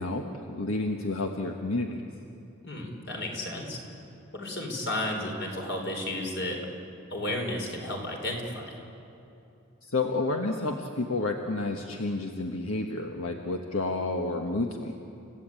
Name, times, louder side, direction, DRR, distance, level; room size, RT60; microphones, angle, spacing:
voice 1, 0.0-2.1 9.8-14.9, left 2 dB, 80° left, 3 dB, 1.4 m, -30 dB
voice 2, 2.6-3.8 4.3-6.7 7.1-8.8, left 1 dB, 55° left, 2 dB, 4.5 m, -33 dB
30.0 x 15.5 x 9.0 m, 2.7 s
head